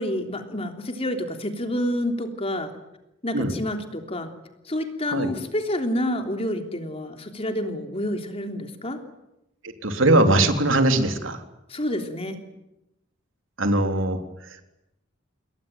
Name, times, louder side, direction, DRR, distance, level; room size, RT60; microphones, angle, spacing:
voice 1, 0.0-2.7 3.2-4.3 4.7-9.0 11.7-12.4, left 1 dB, 30° left, 5 dB, 3.3 m, -28 dB
voice 2, 9.6-11.4 13.6-14.7, right 1 dB, 80° right, 6 dB, 3.5 m, -21 dB
28.5 x 22.0 x 9.2 m, 0.89 s
head